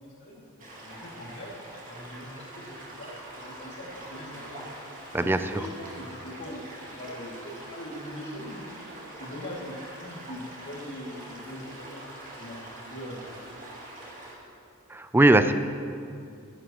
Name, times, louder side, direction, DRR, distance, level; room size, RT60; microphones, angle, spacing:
voice 1, 0.0-1.5 1.8-4.7 5.1-8.7 9.1-12.1 12.4-12.6 12.9-13.3, equal, 55° left, -4 dB, 2.4 m, -42 dB
sound 1, 0.6-14.3, right 1 dB, 35° right, 2.4 m, -44 dB
voice 2, 14.9-15.5, right 2 dB, 10° right, 10 dB, 0.3 m, -19 dB
15.5 x 11.5 x 3.0 m, 2.5 s
head